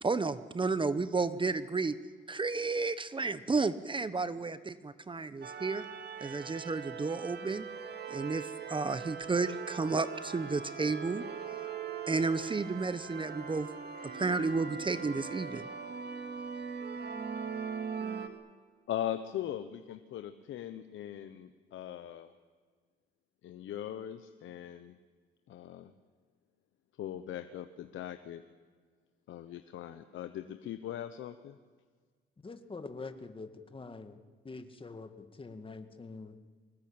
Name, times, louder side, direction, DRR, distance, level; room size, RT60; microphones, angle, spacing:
voice 1, 0.0-1.9 2.3-5.8 6.2-7.7 8.1-10.1 10.3-11.2 12.1-13.7 14.0-15.7, right 4 dB, 25° right, 14 dB, 1.0 m, -32 dB
sound 1, 5.4-18.3, right 6 dB, 55° right, 2.5 m, -41 dB
voice 2, 18.9-22.3 23.4-25.0 25.5-25.9 27.0-28.4 29.3-31.6, left 11 dB, 80° left, 9 dB, 1.1 m, -40 dB
voice 3, 32.4-34.2 34.4-36.4, left 3 dB, 25° left, 8 dB, 2.1 m, -45 dB
24.5 x 20.0 x 8.9 m, 1.5 s
cardioid pair, 90°, 20 cm